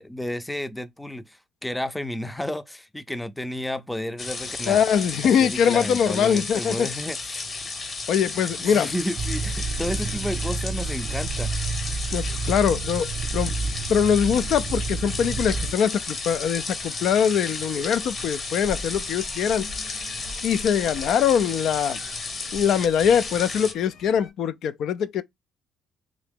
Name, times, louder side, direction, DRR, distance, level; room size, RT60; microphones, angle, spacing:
voice 1, 0.0-4.8 5.4-7.5 8.6-11.5, left 1 dB, 5° left, 0.4 m, -32 dB
sound 1, 4.2-23.7, left 3 dB, 40° left, 1.0 m, -33 dB
voice 2, 4.7-6.9 8.1-8.9 12.1-13.5 13.9-19.7 20.4-22.0 22.5-25.2, left 8 dB, 70° left, 0.3 m, -22 dB
sound 2, 9.2-15.7, right 4 dB, 60° right, 0.6 m, -30 dB
sound 3, 9.6-24.3, left 2 dB, 90° left, 1.1 m, -45 dB
3.7 x 2.9 x 3.5 m
cardioid pair, 100°, 0 cm